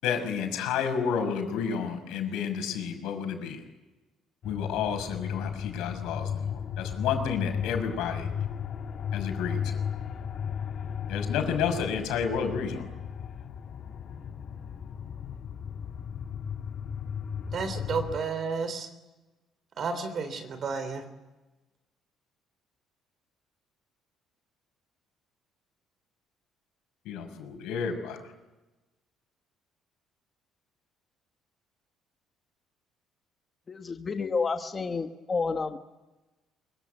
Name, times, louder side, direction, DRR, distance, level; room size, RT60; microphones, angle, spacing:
voice 1, 0.0-3.6 4.4-8.3 9.1-9.8 11.1-12.9 27.0-28.2, left 7 dB, 85° left, 5 dB, 6.2 m, -31 dB
sound 1, 4.4-18.2, left 7 dB, 45° left, 1.8 m, -35 dB
voice 2, 17.5-18.9 19.8-21.0, right 5 dB, 40° right, 9 dB, 3.5 m, -31 dB
voice 3, 33.7-35.8, left 4 dB, 25° left, 6 dB, 1.2 m, -30 dB
24.5 x 24.0 x 9.5 m, 1.1 s
cardioid pair, 150°, 0 cm